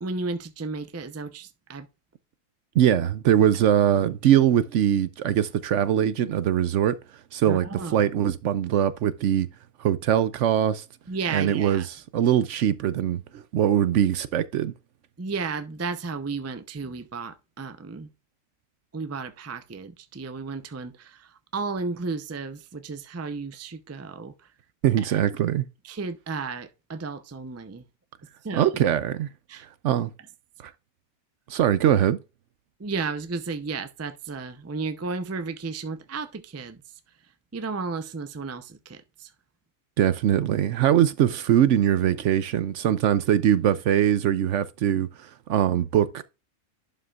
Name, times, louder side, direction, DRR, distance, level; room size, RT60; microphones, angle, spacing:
voice 1, 0.0-1.9 7.4-8.1 11.1-11.9 15.2-18.1 18.9-24.3 25.8-27.8 28.4-28.7 29.5-30.0 32.8-36.8 37.5-39.3, right 4 dB, 20° right, 0.4 m, -33 dB
voice 2, 2.8-6.9 7.3-9.5 9.8-10.8 11.3-11.8 12.1-14.7 24.8-25.6 28.5-29.3 29.8-30.1 30.6-30.7 31.5-32.2 40.0-46.2, right 10 dB, 70° right, 0.8 m, -22 dB
11.5 x 5.5 x 2.4 m
omnidirectional pair, 1.5 m